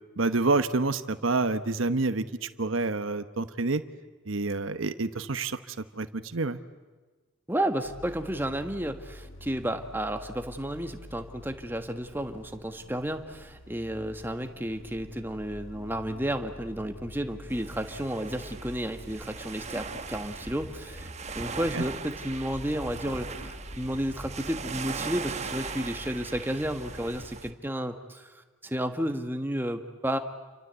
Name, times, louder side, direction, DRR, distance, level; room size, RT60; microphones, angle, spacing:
voice 1, 0.2-3.8 4.3-6.6 21.7-21.8, right 3 dB, 75° right, 11 dB, 1.1 m, -28 dB
voice 2, 7.5-21.1 21.3-28.3 28.6-30.2, right 1 dB, 10° right, 7 dB, 1.4 m, -32 dB
sound 1, 7.8-27.6, left 1 dB, 75° left, 1.8 m, -48 dB
sound 2, 17.5-27.5, right 4 dB, 35° right, 1.1 m, -39 dB
28.5 x 24.5 x 8.1 m, 1.3 s
head